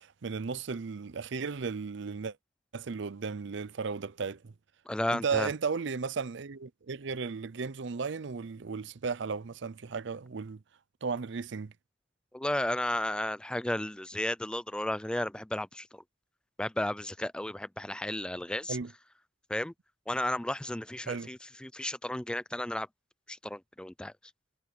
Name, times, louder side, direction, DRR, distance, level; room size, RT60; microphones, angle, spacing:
voice 1, 0.0-2.4 2.7-4.5 5.1-10.6 11.0-11.7 18.7-18.9 21.1-21.3, right 5 dB, 65° right, 0.6 m, -35 dB
voice 2, 4.9-5.5 12.3-16.0 16.6-18.8 19.5-19.7 20.1-22.9 23.3-24.1, left 1 dB, 5° left, 0.3 m, -33 dB
head